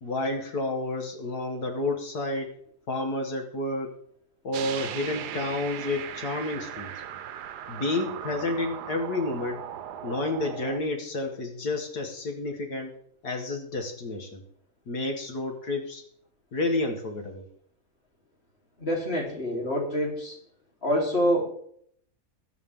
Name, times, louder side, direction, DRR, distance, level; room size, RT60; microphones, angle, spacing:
voice 1, 0.0-2.5 2.9-3.9 4.4-6.9 7.7-9.6 10.0-12.9 13.2-14.4 14.9-16.0 16.5-17.5, left 2 dB, 75° left, 3 dB, 2.2 m, -30 dB
sound 1, 4.5-10.8, right 10 dB, 85° right, 1.4 m, -38 dB
voice 2, 18.8-20.4 20.8-21.5, equal, 40° left, -3 dB, 4.1 m, -26 dB
20.5 x 8.2 x 3.8 m, 0.63 s
omnidirectional pair, 1.7 m